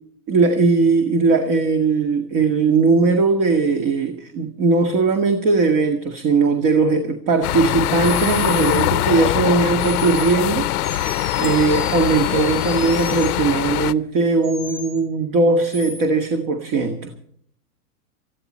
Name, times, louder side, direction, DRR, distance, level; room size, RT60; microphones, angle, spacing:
voice 1, 0.3-11.1 11.4-17.1, right 4 dB, 40° right, 6 dB, 2.0 m, -19 dB
sound 1, 7.4-13.9, left 16 dB, 70° left, 0.7 m, -22 dB
sound 2, 8.0-8.9 9.8-10.4 10.8-13.4 14.4-15.0 15.7-16.0, equal, 10° right, 1.9 m, -35 dB
20.5 x 14.5 x 4.3 m, 0.63 s
hypercardioid pair, 135°, 46 cm